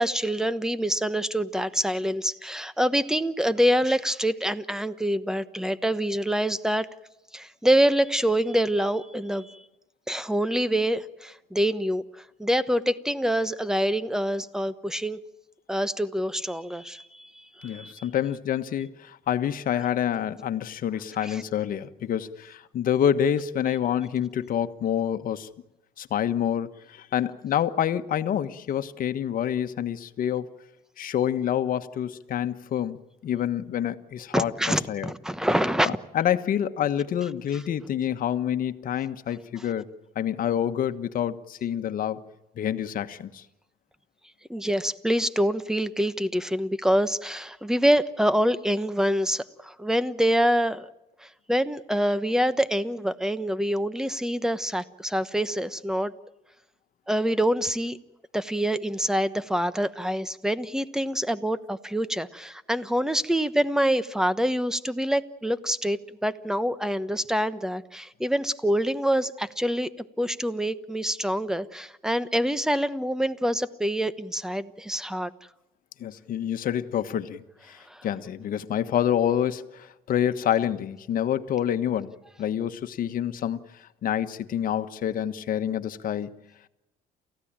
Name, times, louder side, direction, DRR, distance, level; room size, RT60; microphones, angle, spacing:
voice 1, 0.0-6.9 7.3-9.6 10.1-15.2 15.7-18.1 21.2-21.4 34.3-36.0 44.5-50.9 51.2-56.1 57.1-58.0 58.3-69.9 70.2-75.3 77.9-78.1, equal, 5° right, 14 dB, 1.1 m, -26 dB
voice 2, 17.6-25.5 26.0-30.5 31.0-34.5 34.9-35.1 35.8-39.9 40.1-42.2 42.6-43.4 76.0-86.4, left 10 dB, 55° left, 10 dB, 1.4 m, -27 dB
29.0 x 15.5 x 8.9 m, 0.97 s
cardioid pair, 110°, 17 cm